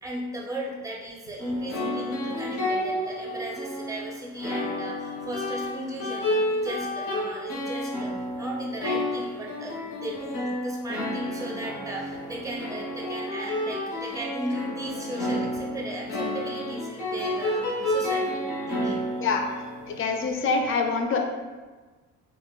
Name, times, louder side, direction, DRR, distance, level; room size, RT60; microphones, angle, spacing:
voice 1, 0.0-8.1 8.4-19.1, right 1 dB, 10° right, -3 dB, 0.5 m, -36 dB
sound 1, 1.4-20.3, left 1 dB, 85° left, 0.6 m, -31 dB
voice 2, 19.9-21.2, left 4 dB, 45° left, 3 dB, 0.4 m, -25 dB
2.8 x 2.0 x 2.2 m, 1.3 s
cardioid pair, 90°, 30 cm